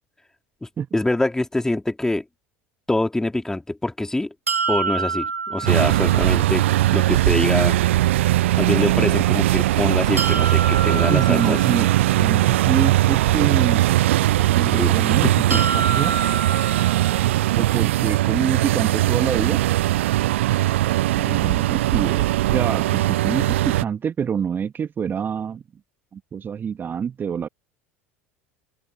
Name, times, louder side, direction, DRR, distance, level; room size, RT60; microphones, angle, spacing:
voice 1, 0.6-2.2 2.9-4.3 4.7-6.6 6.9-7.8 8.6-11.6 14.7-15.0 15.2-15.6, left 2 dB, 5° left, 3.1 m, -24 dB
sound 1, 4.5-6.4 10.2-12.2 15.5-17.5, right 5 dB, 85° right, 2.0 m, -27 dB
sound 2, 5.7-23.8, right 15 dB, 65° right, 0.4 m, -19 dB
voice 2, 11.1-13.9 14.4-15.4 15.7-16.2 17.5-19.6 21.2-25.6 26.1-27.5, right 7 dB, 30° right, 2.7 m, -26 dB
open air
figure-of-eight pair, 75°, 7 cm